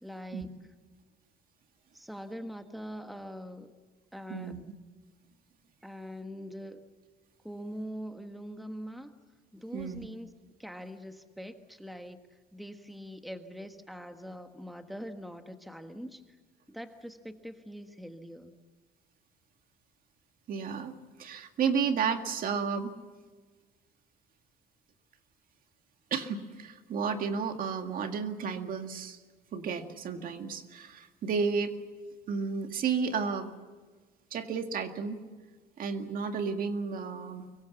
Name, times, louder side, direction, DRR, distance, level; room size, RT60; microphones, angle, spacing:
voice 1, 0.0-0.5 1.9-3.7 4.1-4.5 5.8-6.9 7.4-9.2 9.5-10.3 10.6-16.4 16.7-18.5, equal, ahead, 7 dB, 1.5 m, -43 dB
voice 2, 4.3-4.6 9.7-10.1 20.5-22.9 26.1-29.2 29.5-31.8 32.3-33.5 34.3-35.2 35.8-37.5, right 6 dB, 55° right, 6 dB, 2.0 m, -32 dB
25.0 x 22.5 x 7.1 m, 1.4 s
cardioid pair, 110°, 17 cm